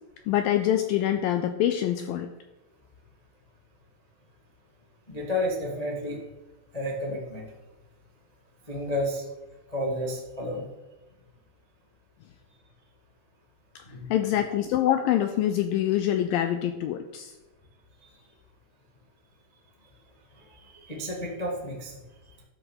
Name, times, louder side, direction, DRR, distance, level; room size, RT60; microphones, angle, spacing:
voice 1, 0.3-2.3 14.1-17.3, left 11 dB, 80° left, 8 dB, 2.1 m, -25 dB
voice 2, 5.1-6.2 6.7-7.4 8.7-9.2 9.7-10.6 13.9-14.1 18.0-18.1 20.6-21.9, left 1 dB, 60° left, -2 dB, 0.4 m, -31 dB
12.5 x 6.8 x 6.4 m, 1.1 s
omnidirectional pair, 4.7 m